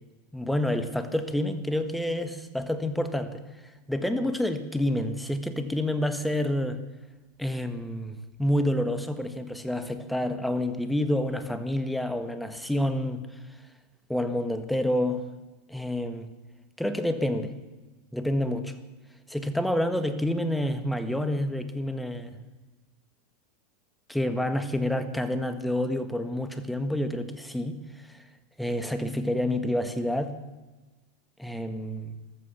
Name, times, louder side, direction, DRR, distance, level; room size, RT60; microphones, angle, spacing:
voice 1, 0.3-3.4 3.9-6.8 7.4-13.2 14.1-15.2 15.7-16.3 16.8-17.5 18.1-18.7 19.3-22.4 24.1-27.8 28.1-28.2 28.6-30.3 31.4-32.1, left 1 dB, 5° left, 9 dB, 1.5 m, -28 dB
14.5 x 13.5 x 7.0 m, 1.2 s
supercardioid pair, 115°, 0 cm